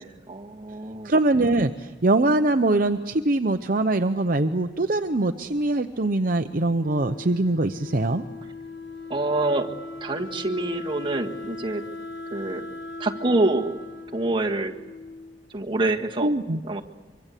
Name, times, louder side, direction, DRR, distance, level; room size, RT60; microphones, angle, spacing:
voice 1, 0.0-1.1 9.1-9.7 10.0-11.8 12.3-12.7 13.0-13.8 14.1-14.7 15.5-16.3 16.6-16.8, right 2 dB, 25° right, 2 dB, 1.7 m, -26 dB
voice 2, 1.0-8.2 16.2-16.6, right 2 dB, 50° right, 7 dB, 0.8 m, -23 dB
Wind instrument woodwind instrument, 6.7-15.5, left 3 dB, 80° left, 1.6 m, -39 dB
25.0 x 24.0 x 8.4 m, 1.3 s
head